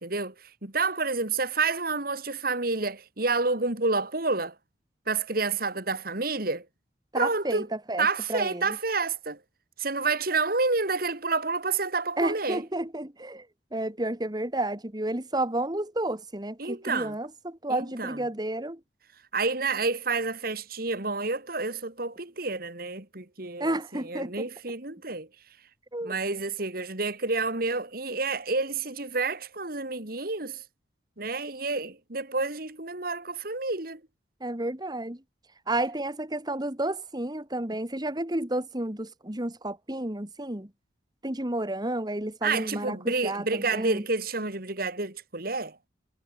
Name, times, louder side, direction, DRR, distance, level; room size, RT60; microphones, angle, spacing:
voice 1, 0.0-0.3 0.6-4.5 5.1-6.6 7.1-7.6 8.0-9.4 9.8-12.6 16.6-17.1 17.7-18.2 19.3-25.3 26.0-30.6 31.2-34.0 42.4-45.8, right 3 dB, 55° right, 2.8 m, -29 dB
voice 2, 7.1-8.8 12.2-13.5 13.7-18.8 23.6-24.5 25.9-26.1 34.4-35.2 35.7-40.7 41.2-44.0, right 1 dB, 25° right, 2.1 m, -31 dB
head